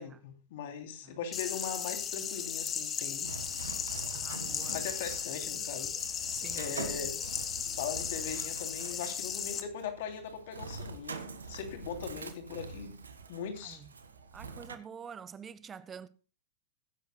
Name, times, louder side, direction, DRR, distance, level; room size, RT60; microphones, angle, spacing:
voice 1, 0.0-3.3 4.7-5.9 6.5-7.2 7.8-11.2 11.5-13.0 13.3-13.8, left 7 dB, 60° left, 2.9 m, -40 dB
sound 1, 1.3-9.6, left 7 dB, 30° left, 2.1 m, -36 dB
Bird, 3.2-14.7, right 4 dB, 80° right, 1.6 m, -45 dB
voice 2, 4.1-4.8 6.3-6.7 13.6-13.9 14.3-16.1, right 7 dB, 25° right, 0.8 m, -47 dB
22.0 x 10.5 x 2.2 m
figure-of-eight pair, 95°, 0 cm